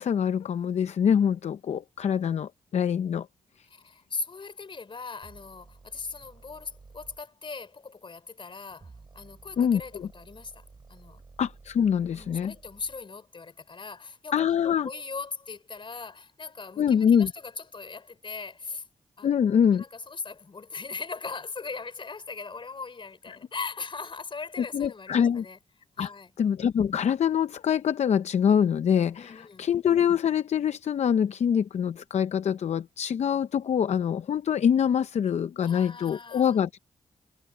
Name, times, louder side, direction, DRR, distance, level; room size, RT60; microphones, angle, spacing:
voice 1, 0.0-3.3 9.6-10.1 11.4-12.5 14.3-14.9 16.8-17.3 19.2-19.8 24.7-25.4 26.0-26.1 26.4-36.8, left 8 dB, 65° left, 0.7 m, -24 dB
voice 2, 3.7-10.6 10.9-11.2 12.1-18.9 19.2-19.3 19.7-25.6 26.0-26.3 29.1-29.7 35.6-36.6, left 4 dB, 45° left, 4.0 m, -39 dB
sound 1, 5.2-7.2 8.7-13.1, right 3 dB, 40° right, 5.4 m, -53 dB
cardioid pair, 65°, 12 cm